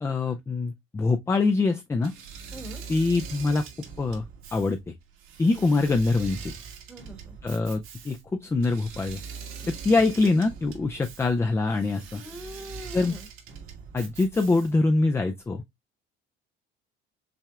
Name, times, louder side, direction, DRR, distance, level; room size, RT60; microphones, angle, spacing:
voice 1, 0.0-2.1 2.9-3.6 4.0-4.2 4.5-4.9 5.4-6.5 7.4-9.2 9.7-12.2 12.9-13.2 13.9-15.6, left 3 dB, 10° left, 0.3 m, -24 dB
Engine / Mechanisms, 2.0-14.9, right 6 dB, 75° right, 1.6 m, -42 dB
voice 2, 2.5-2.8 5.5-5.6 6.9-7.4 10.0-10.2 12.0-13.3, equal, 5° right, 1.0 m, -43 dB
5.9 x 3.3 x 2.3 m
cardioid pair, 145°, 21 cm